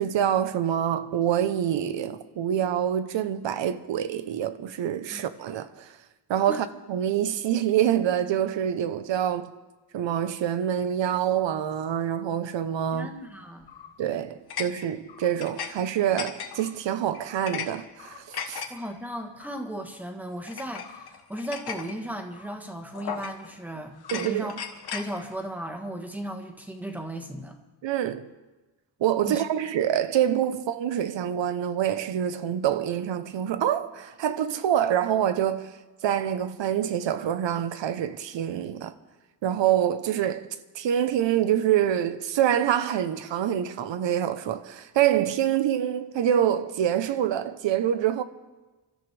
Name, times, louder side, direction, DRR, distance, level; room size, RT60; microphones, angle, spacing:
voice 1, 0.0-5.9 6.3-9.5 9.9-13.1 14.0-18.6 24.1-24.5 27.8-28.3 29.0-35.7 36.0-38.9 39.4-40.5 40.7-48.2, right 10 dB, 75° right, 0.9 m, -26 dB
voice 2, 12.9-13.7 18.7-24.6 24.9-27.6 29.2-29.4, right 1 dB, 5° right, 1.2 m, -36 dB
sound 1, 13.6-14.0 14.5-15.7 16.0-16.7 17.1-17.7 18.0-18.7 19.4-19.6 20.5-21.9 22.4-22.6 22.9-23.5 24.0-25.1, left 7 dB, 55° left, 1.3 m, -37 dB
28.0 x 13.0 x 3.4 m
wide cardioid pair, 175°, 45 cm